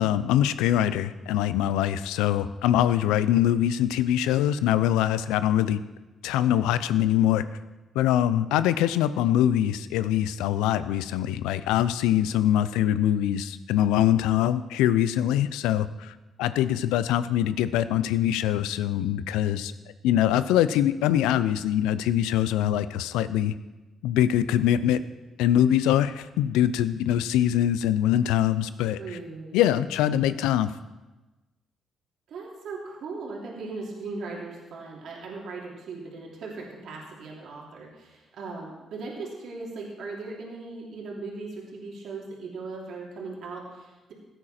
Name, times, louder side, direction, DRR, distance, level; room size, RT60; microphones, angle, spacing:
voice 1, 0.0-5.8 6.2-7.4 7.9-19.7 20.0-23.5 24.0-25.0 25.4-29.0 29.5-30.7, left 11 dB, 90° left, 14 dB, 0.5 m, -23 dB
voice 2, 29.0-29.6 32.3-44.1, right 3 dB, 70° right, -3 dB, 3.0 m, -38 dB
15.5 x 9.0 x 4.3 m, 1.1 s
supercardioid pair, 60°, 0 cm